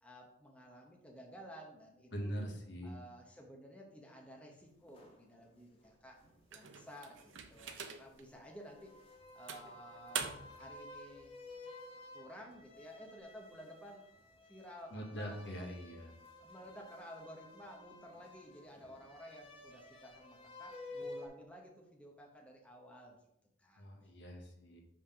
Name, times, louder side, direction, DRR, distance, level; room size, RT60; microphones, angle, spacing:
voice 1, 0.0-2.4 2.8-6.2 6.5-8.9 9.3-11.4 12.1-14.0 14.5-15.7 16.4-23.2 23.6-23.9, equal, 5° left, -1 dB, 0.8 m, -54 dB
voice 2, 2.1-2.9 14.9-16.1 23.8-24.8, equal, 65° left, 2 dB, 1.2 m, -43 dB
sound 1, 4.7-7.2 7.5-21.3, left 2 dB, 30° left, 1.0 m, -53 dB
sound 2, 6.5-8.2 8.8-8.9 9.5-10.7, right 7 dB, 75° right, 0.6 m, -44 dB
5.5 x 3.4 x 5.6 m, 0.80 s
head